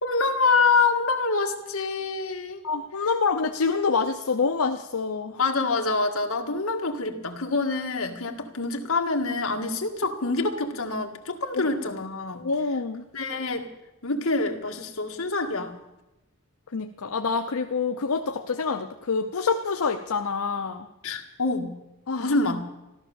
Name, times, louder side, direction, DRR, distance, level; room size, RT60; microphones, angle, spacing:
voice 1, 0.0-2.6 5.4-12.4 13.1-13.7 14.0-15.8 21.0-21.7 22.2-22.7, left 3 dB, 70° left, 3 dB, 1.8 m, -26 dB
voice 2, 2.6-5.4 11.5-11.6 12.4-13.0 16.7-20.9 22.1-22.3, left 4 dB, 90° left, 6 dB, 0.7 m, -26 dB
14.5 x 12.5 x 7.1 m, 0.98 s
head